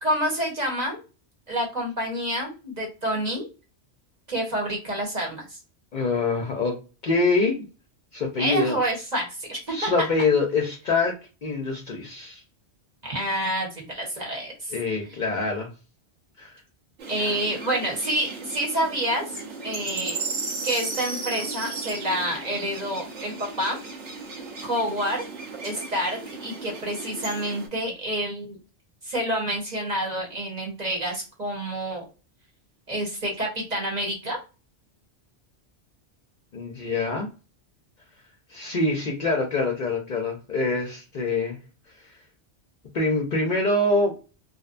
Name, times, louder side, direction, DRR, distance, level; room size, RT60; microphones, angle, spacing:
voice 1, 0.0-1.0 1.5-3.5 4.3-5.6 8.4-10.1 13.0-14.7 17.1-20.2 20.6-23.8 24.6-25.2 25.6-28.6 29.0-32.1 32.9-34.4, right 1 dB, 40° right, -1 dB, 1.0 m, -28 dB
voice 2, 5.9-6.8 7.0-7.7 8.1-8.8 9.7-11.1 11.4-12.4 14.7-15.7 16.4-16.6 36.5-37.3 38.5-41.6 42.9-44.2, left 3 dB, 55° left, 1 dB, 0.6 m, -25 dB
sound 1, 17.0-27.7, right 4 dB, 90° right, 1.1 m, -35 dB
2.6 x 2.1 x 2.4 m, 0.32 s
omnidirectional pair, 1.2 m